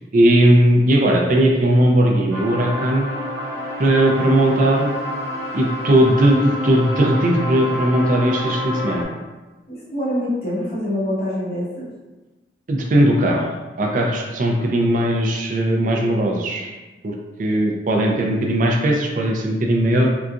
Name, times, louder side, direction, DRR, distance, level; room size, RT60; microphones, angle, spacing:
voice 1, 0.1-3.1 3.8-5.0 5.5-9.1 12.7-13.5 13.8-16.7 17.0-20.1, right 1 dB, 50° right, 0 dB, 0.4 m, -18 dB
sound 1, 2.3-9.0, left 1 dB, 75° right, 0.8 m, -28 dB
voice 2, 9.7-11.9, left 1 dB, 55° left, -9 dB, 1.3 m, -25 dB
3.7 x 2.3 x 2.4 m, 1.2 s
head